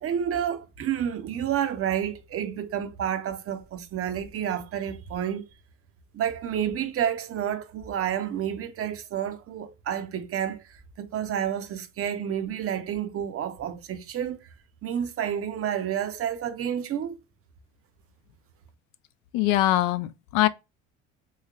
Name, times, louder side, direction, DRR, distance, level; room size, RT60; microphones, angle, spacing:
voice 1, 0.0-5.5 6.1-14.5 14.8-17.2, right 9 dB, 40° right, 0.7 m, -30 dB
voice 2, 19.3-20.5, left 15 dB, 65° left, 0.5 m, -22 dB
3.2 x 3.1 x 2.3 m
hypercardioid pair, 80°, 34 cm